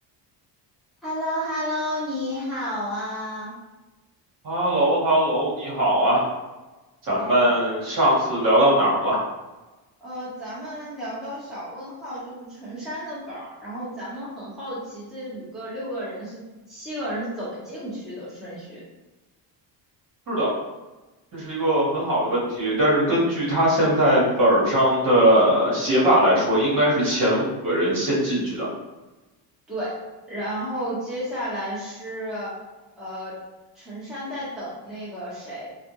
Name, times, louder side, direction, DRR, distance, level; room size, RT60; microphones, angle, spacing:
voice 1, 1.0-3.6 7.1-7.5 10.0-18.8 29.7-30.0 30.3-32.5 33.0-33.4 33.7-35.7, equal, ahead, -11 dB, 1.2 m, -32 dB
voice 2, 4.4-6.3 7.1-9.2 20.3-20.5 21.3-28.7, right 1 dB, 45° right, -6 dB, 1.4 m, -20 dB
3.4 x 2.4 x 3.0 m, 1.1 s
cardioid pair, 150°, 44 cm